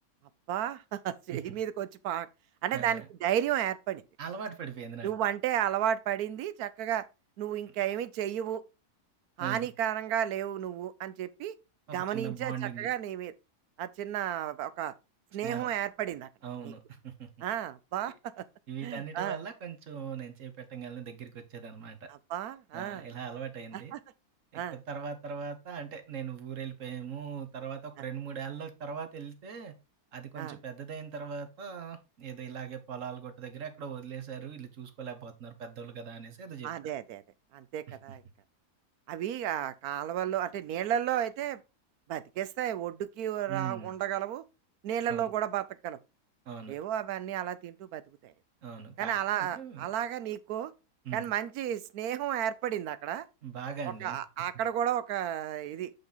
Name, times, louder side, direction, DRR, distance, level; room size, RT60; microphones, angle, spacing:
voice 1, 0.5-2.3 2.6-4.0 5.0-7.1 7.4-8.6 9.4-11.5 11.9-13.3 13.8-14.9 15.3-16.3 16.6-16.7 17.4-18.5 18.8-19.4 22.1-23.0 23.9-24.0 24.5-24.8 30.4-30.6 36.6-37.2 37.5-38.2 39.1-41.6 42.1-44.4 44.8-46.0 46.7-48.3 49.0-50.7 51.1-53.2 54.0-55.9, right 10 dB, 75° right, 1.2 m, -33 dB
voice 2, 2.7-3.1 4.2-5.1 9.4-9.7 11.9-12.9 15.4-15.7 16.4-17.3 18.1-18.2 18.7-22.1 22.7-23.9 24.5-29.8 30.1-36.9 37.9-38.2 43.5-43.9 45.1-45.3 46.5-46.8 48.6-49.9 51.0-51.3 53.4-54.2, right 7 dB, 55° right, 1.4 m, -40 dB
7.0 x 5.5 x 3.9 m
omnidirectional pair, 1.6 m